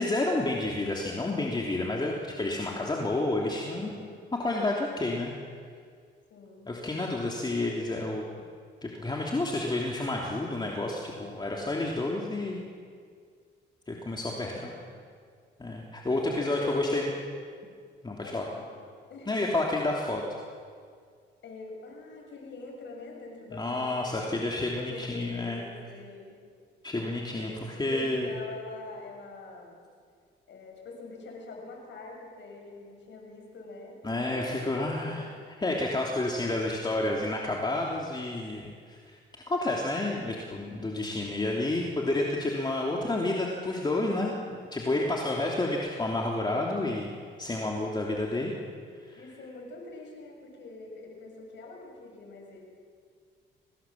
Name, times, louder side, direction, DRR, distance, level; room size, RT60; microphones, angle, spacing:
voice 1, 0.0-3.9 4.4-5.3 6.7-8.2 8.8-12.6 13.9-14.7 15.6-17.1 18.0-18.4 19.3-20.2 23.5-25.6 26.8-28.3 34.0-35.3 35.6-39.1 39.5-47.1 47.4-48.5 49.1-49.2, left 2 dB, 20° left, -1 dB, 3.1 m, -30 dB
voice 2, 3.7-4.2 6.3-6.7 14.1-14.9 16.1-17.0 18.2-18.7 19.1-19.3 21.4-24.4 24.7-26.4 27.3-27.5 27.8-29.8 30.5-35.2 35.9-36.0 49.2-52.7, left 3 dB, 65° left, 1 dB, 7.1 m, -44 dB
24.5 x 19.0 x 7.6 m, 2.1 s
cardioid pair, 90°, 20 cm